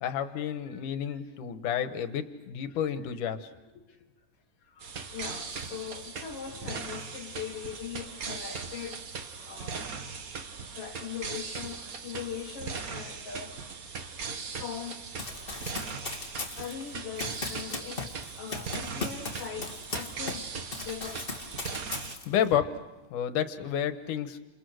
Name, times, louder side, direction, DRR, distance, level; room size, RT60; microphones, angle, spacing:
voice 1, 0.0-3.9 6.7-6.8 22.2-22.7 23.1-24.4, left 9 dB, 75° left, 2.8 m, -30 dB
voice 2, 4.7-9.1 9.4-10.1 10.8-13.6 14.6-15.0 15.5-15.6 16.6-20.5 20.8-21.2, left 8 dB, 55° left, 2.1 m, -41 dB
sound 1, 4.8-22.2, right 5 dB, 75° right, 0.8 m, -39 dB
Run, 15.2-20.5 20.7-22.5, left 3 dB, 20° left, 1.9 m, -38 dB
30.0 x 28.0 x 6.4 m
omnidirectional pair, 3.8 m